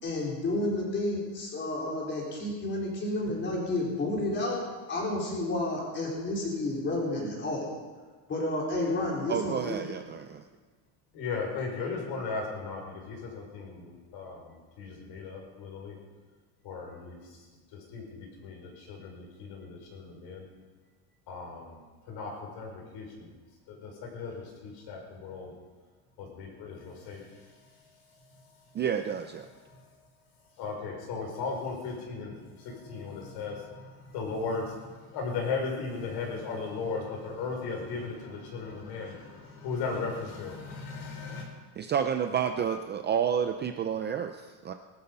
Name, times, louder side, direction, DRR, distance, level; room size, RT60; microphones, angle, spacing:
voice 1, 0.0-4.6 4.9-7.6 8.3-9.8, left 2 dB, 25° left, -3 dB, 4.4 m, -31 dB
voice 2, 9.3-10.4 28.7-29.5 41.8-44.7, right 8 dB, 25° right, 6 dB, 0.5 m, -30 dB
voice 3, 11.1-14.4 14.8-16.0 16.6-17.2 17.9-20.5 21.3-21.7 22.1-23.3 23.7-25.5 26.2-27.2 30.6-32.3 32.6-33.8 34.1-34.7 35.1-41.4, left 4 dB, 60° left, 1 dB, 5.5 m, -36 dB
20.0 x 12.5 x 5.5 m, 1.4 s
cardioid pair, 170°, 46 cm